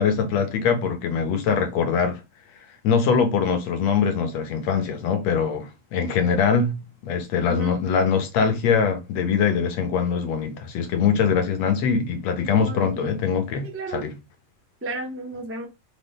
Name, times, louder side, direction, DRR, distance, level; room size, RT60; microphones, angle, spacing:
voice 1, 0.0-2.2 2.8-13.7 13.9-14.1, left 6 dB, 60° left, 2.1 m, -23 dB
voice 2, 7.4-7.8 12.5-13.2 13.6-14.0 14.8-15.7, right 2 dB, 15° right, 0.4 m, -33 dB
6.3 x 4.0 x 5.3 m
omnidirectional pair, 3.9 m